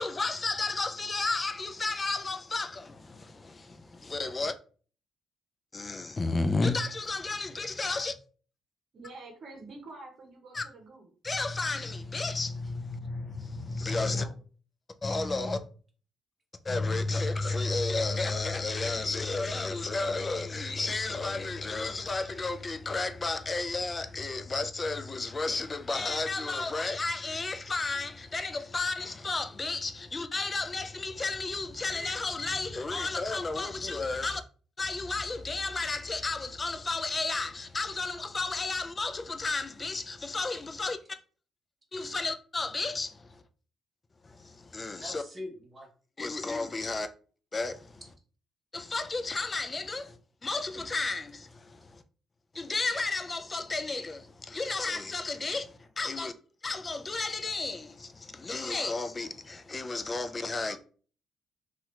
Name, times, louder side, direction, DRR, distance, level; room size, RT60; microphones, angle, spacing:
voice 1, 0.0-3.8 4.0-4.5 5.7-8.1 10.5-10.7 11.2-14.3 15.0-15.6 16.6-34.4 34.8-41.2 41.9-43.4 44.2-45.2 46.2-47.1 47.5-48.0 48.7-50.2 50.4-52.0 52.5-56.3 56.6-60.8, left 3 dB, 30° left, 0.4 m, -32 dB
voice 2, 8.9-11.1, right 3 dB, 55° right, 0.9 m, -47 dB
voice 3, 13.7-14.4 45.0-45.9, left 1 dB, 25° right, 1.0 m, -43 dB
2.8 x 2.4 x 3.2 m
cardioid pair, 90°, 0 cm